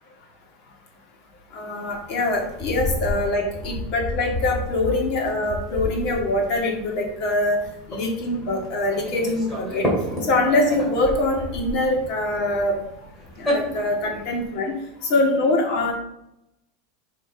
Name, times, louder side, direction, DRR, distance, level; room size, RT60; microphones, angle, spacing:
voice 1, 1.5-7.6 7.9-9.9 10.2-12.8 13.4-14.7 15.1-15.9, left 2 dB, 50° left, 0 dB, 1.9 m, -23 dB
sound 1, 1.9-14.5, left 1 dB, 10° left, 2.3 m, -31 dB
5.4 x 5.0 x 4.6 m, 0.83 s
supercardioid pair, 160°, 0 cm